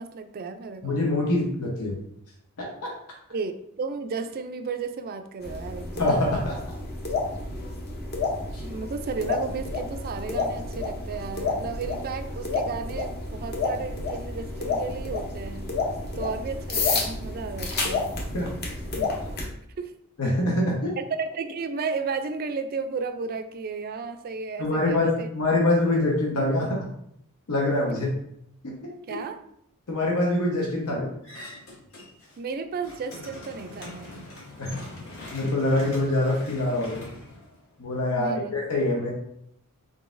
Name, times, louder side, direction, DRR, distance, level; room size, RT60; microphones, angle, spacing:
voice 1, 0.0-1.0 3.3-6.3 8.6-15.7 16.2-18.1 19.8-20.0 21.0-25.3 25.8-26.1 29.1-29.4 32.4-34.3 38.1-38.5 39.0-39.1, right 4 dB, 45° right, 8 dB, 0.3 m, -33 dB
voice 2, 0.8-2.0 2.6-2.9 6.0-6.6 8.5-8.6 18.3-18.5 19.0-19.1 20.2-20.9 24.6-26.8 27.5-28.1 28.6-28.9 29.9-31.1 34.6-34.8 35.3-37.0 37.8-39.1, left 1 dB, 90° left, -2 dB, 0.9 m, -25 dB
sound 1, 5.4-19.5, left 3 dB, 45° left, 0.7 m, -30 dB
sound 2, 31.2-32.4 32.7-38.0, left 2 dB, 65° left, 1.1 m, -43 dB
3.8 x 3.6 x 2.5 m, 0.71 s
head